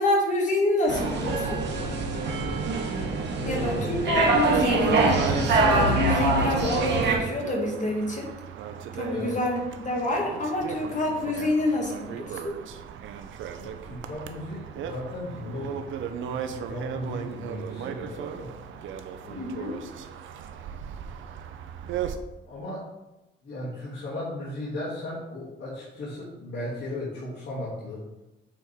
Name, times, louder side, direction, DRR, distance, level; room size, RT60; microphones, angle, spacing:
voice 1, 0.0-1.6 3.4-8.3 8.9-12.6 19.4-19.7, left 2 dB, 40° left, -1 dB, 2.1 m, -27 dB
sound 1, 0.9-7.2, right 3 dB, 60° right, 1.6 m, -25 dB
voice 2, 3.3-3.9 9.1-9.4 13.6-18.5 19.2-19.8 22.5-22.9 23.4-28.0, left 1 dB, 60° left, -9 dB, 2.6 m, -36 dB
sound 2, 4.5-22.2, right 8 dB, 80° right, 0.7 m, -35 dB
8.9 x 4.5 x 3.5 m, 0.97 s
cardioid pair, 90°, 20 cm